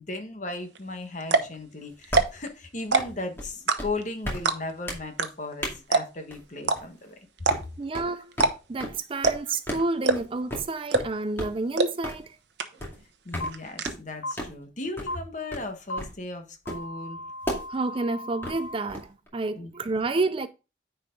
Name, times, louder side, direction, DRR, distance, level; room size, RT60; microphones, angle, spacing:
voice 1, 0.0-7.5 12.7-12.8 13.2-17.2 19.5-19.7, left 2 dB, 40° left, 1.3 m, -36 dB
sound 1, 0.8-0.9 1.2-1.6 2.0-2.5 2.8-3.2 3.7-4.1 4.4-4.8 5.2-5.3 5.5-5.6 5.9-6.3 6.6-6.8 7.4-7.8 8.3-8.5 8.8-8.9 9.2-9.6 10.0-10.4 10.9-11.2 11.8-11.9 12.2-12.3 12.6-13.0 13.3-13.9, right 3 dB, 65° right, 0.9 m, -23 dB
sound 2, 2.1-2.4 3.0-3.1 3.4-3.5 3.8-3.9 4.2-4.4 4.9-5.0 5.6-5.7 6.3-6.4 6.8-7.1 7.5-7.6 7.9-8.1 8.4-8.5 8.8-9.0 9.2-9.4 9.7-9.8 10.1-10.2 10.5-10.6 10.9-11.1 11.4-11.6 12.0-12.2 12.8-13.0 13.3-13.5 13.9-14.1 14.4-14.5 15.0-15.1 15.5-15.6 16.0-16.1 16.7-16.9 17.4-17.6 18.4-19.3, equal, 10° left, 2.2 m, -33 dB
voice 2, 7.8-8.3 8.7-12.4 17.7-20.5, right 3 dB, 30° right, 0.4 m, -29 dB
sound 3, 13.4-13.5 14.2-14.3 15.1-15.2 15.9-16.0 16.6-18.8, left 1 dB, 70° left, 1.3 m, -36 dB
9.7 x 4.7 x 3.8 m
head